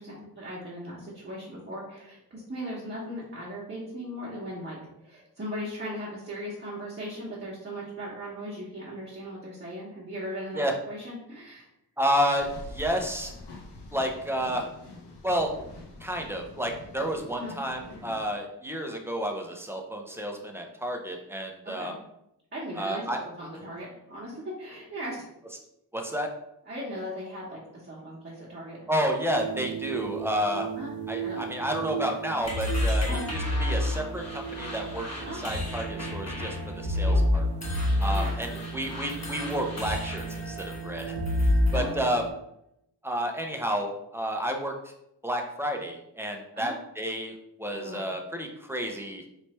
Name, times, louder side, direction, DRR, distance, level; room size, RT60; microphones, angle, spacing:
voice 1, 0.0-11.7 17.3-17.5 21.6-21.9 22.5-25.3 26.7-28.8 30.8-30.9 31.2-31.9 33.0-33.3 35.3-35.4 37.0-37.2 38.1-38.3 41.7-42.2 46.5-46.7 47.7-48.2 48.8-49.0, equal, 25° right, -6 dB, 1.1 m, -38 dB
voice 2, 12.0-13.3 13.9-14.7 15.2-15.5 16.0-21.9 22.8-23.2 25.9-26.3 28.9-30.7 31.1-37.4 38.0-41.1 41.7-42.2 43.0-44.9 45.2-47.3 47.6-49.2, equal, 5° right, 2 dB, 0.5 m, -30 dB
sound 1, 12.3-18.3, left 2 dB, 85° left, 0.8 m, -45 dB
sound 2, 29.3-42.3, right 7 dB, 85° right, 0.7 m, -38 dB
sound 3, 32.4-41.9, left 1 dB, 40° left, 1.1 m, -28 dB
3.2 x 3.1 x 4.3 m, 0.80 s
wide cardioid pair, 120°, 40 cm